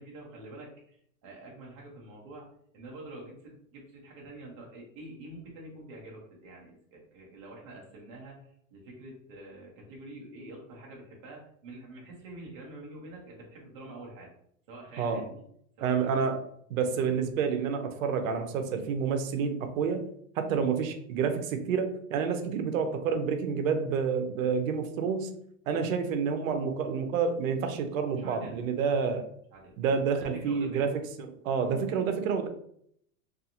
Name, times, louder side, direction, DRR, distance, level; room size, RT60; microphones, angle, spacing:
voice 1, 0.0-14.3 14.7-15.4 15.8-16.3 28.1-28.6 28.9-29.1 29.5-29.8 30.2-30.9, right 2 dB, 25° right, -3 dB, 0.3 m, -47 dB
voice 2, 15.0-15.3 15.8-16.4 16.7-20.0 20.4-25.3 25.7-29.3 29.8-32.5, right 6 dB, 65° right, 7 dB, 0.6 m, -29 dB
2.4 x 2.4 x 2.8 m, 0.67 s
supercardioid pair, 160°, 43 cm